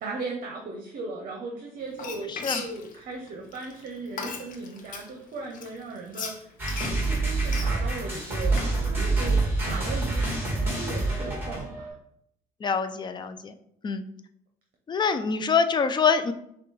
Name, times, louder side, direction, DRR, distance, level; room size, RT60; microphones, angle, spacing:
voice 1, 0.0-8.6 8.9-11.9, right 3 dB, 55° right, 1 dB, 0.8 m, -37 dB
Frying (food), 1.9-5.1 5.5-8.8, left 5 dB, 50° left, 0.8 m, -37 dB
voice 2, 2.3-2.6 12.6-13.5 13.8-14.0 14.9-16.3, left 5 dB, 25° left, 9 dB, 0.4 m, -25 dB
sound 1, 6.6-11.9, right 3 dB, 10° right, 1.5 m, -26 dB
5.9 x 2.3 x 3.2 m, 0.72 s
cardioid pair, 110°, 17 cm